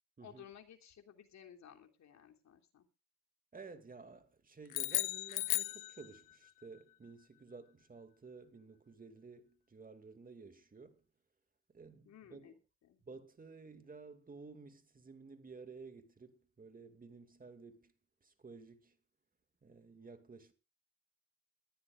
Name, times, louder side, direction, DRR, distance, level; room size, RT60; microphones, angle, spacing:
voice 1, 0.2-2.9 12.0-12.5 12.8-13.0, left 9 dB, 65° left, 3.2 m, -56 dB
voice 2, 3.5-11.0 11.7-12.5 13.1-17.9 18.2-19.0 19.6-20.5, right 4 dB, 30° right, 2.3 m, -54 dB
sound 1, 4.7-6.5, left 18 dB, 90° left, 0.8 m, -36 dB
21.0 x 14.5 x 2.5 m
cardioid pair, 90°, 30 cm